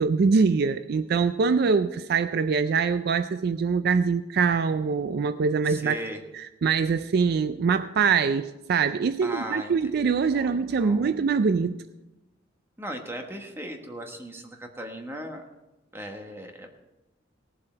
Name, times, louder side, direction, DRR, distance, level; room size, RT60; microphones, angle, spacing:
voice 1, 0.0-6.0 6.3-11.8, right 5 dB, 55° right, 12 dB, 0.4 m, -24 dB
voice 2, 5.7-6.2 9.2-9.7 10.3-11.2 12.8-15.4 15.9-16.7, equal, 15° right, 3 dB, 1.3 m, -37 dB
17.5 x 7.6 x 4.5 m, 1.0 s
head